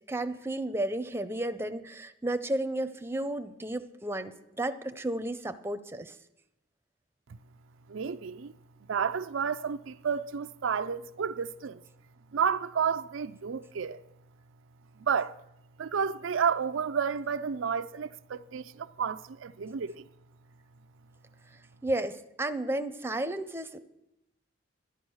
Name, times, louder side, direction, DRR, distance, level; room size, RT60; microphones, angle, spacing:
voice 1, 0.1-6.2 21.8-23.8, right 1 dB, 10° right, 0.6 m, -33 dB
voice 2, 7.9-8.6 8.9-11.8 12.3-14.0 15.0-15.3 15.8-20.1, right 6 dB, 80° right, 0.5 m, -31 dB
12.0 x 11.0 x 6.3 m
head